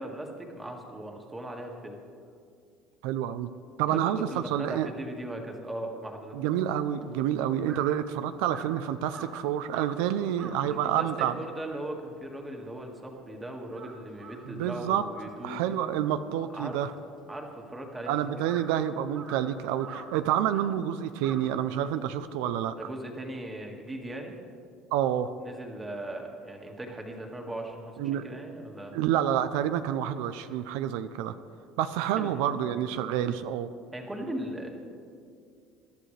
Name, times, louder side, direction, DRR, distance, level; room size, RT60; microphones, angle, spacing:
voice 1, 0.0-2.0 3.9-6.4 10.6-15.8 16.5-16.8 17.3-18.2 22.7-24.3 25.4-28.9 32.2-32.3 33.9-34.7, right 1 dB, 10° right, 1 dB, 1.9 m, -38 dB
voice 2, 3.0-3.5 3.8-4.9 6.3-11.3 14.5-15.1 15.4-16.9 18.1-22.7 24.9-25.3 28.0-28.5 28.9-31.3 31.8-33.7, right 10 dB, 85° right, 11 dB, 0.5 m, -28 dB
Crow, 6.7-13.3 13.6-22.2, right 5 dB, 45° right, 1.6 m, -48 dB
22.0 x 11.5 x 3.3 m, 2.3 s
cardioid pair, 130°, 0 cm